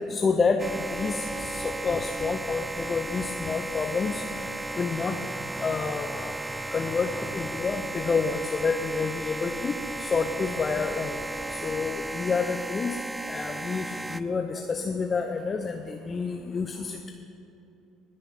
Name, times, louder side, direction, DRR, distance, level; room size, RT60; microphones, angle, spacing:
voice 1, 0.1-0.6 0.9-4.2 4.8-5.1 5.6-6.3 6.7-9.7 10.0-11.1 11.5-13.0 13.3-17.1, left 5 dB, 30° left, 5 dB, 0.7 m, -28 dB
sound 1, 0.6-14.2, right 2 dB, 10° right, 0.5 m, -35 dB
20.0 x 6.6 x 5.7 m, 2.8 s
figure-of-eight pair, 55°, 0 cm